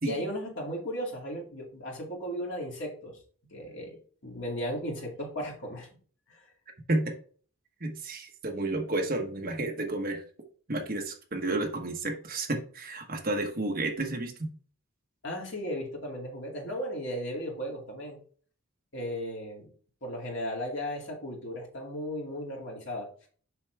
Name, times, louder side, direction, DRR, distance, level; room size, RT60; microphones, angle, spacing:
voice 1, 0.0-3.2 3.5-4.0 4.2-5.9 6.3-6.5 15.2-18.2 18.9-19.7 20.0-23.1, equal, 55° left, -1 dB, 2.5 m, -36 dB
voice 2, 7.8-10.2 10.7-14.5, right 2 dB, 40° right, 3 dB, 1.2 m, -31 dB
7.1 x 5.7 x 3.4 m, 0.44 s
head